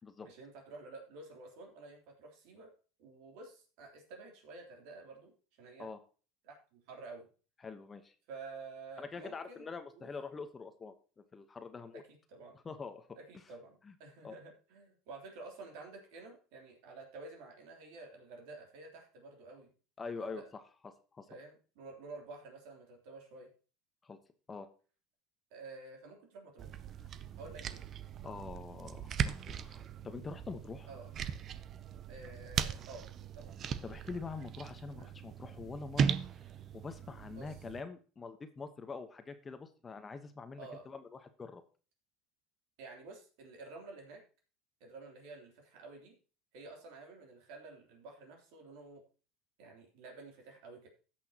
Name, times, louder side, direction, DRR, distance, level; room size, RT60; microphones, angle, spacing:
voice 1, 0.2-2.7 3.0-5.9 6.4-7.3 8.3-9.7 10.0-10.1 11.9-12.0 12.3-12.6 13.2-19.7 20.2-20.5 21.3-23.5 25.5-26.7 27.4-27.9 30.9-31.1 32.1-33.1 33.3-33.6 35.0-35.1 37.3-37.5 40.6-40.8 42.8-44.2 44.8-46.2 46.5-49.0 49.6-50.9, right 3 dB, 70° right, 1 dB, 3.2 m, -50 dB
voice 2, 7.6-8.1 9.0-10.9 11.3-12.0 12.6-13.1 13.8-13.9 14.2-14.4 20.0-20.4 20.8-21.3 24.0-24.2 24.5-24.7 28.2-30.9 33.8-36.2 36.7-41.6, left 4 dB, 25° left, 9 dB, 1.1 m, -45 dB
sound 1, 26.6-37.8, right 7 dB, 45° right, 0.6 m, -38 dB
16.5 x 6.1 x 2.9 m, 0.36 s
hypercardioid pair, 95°, 0 cm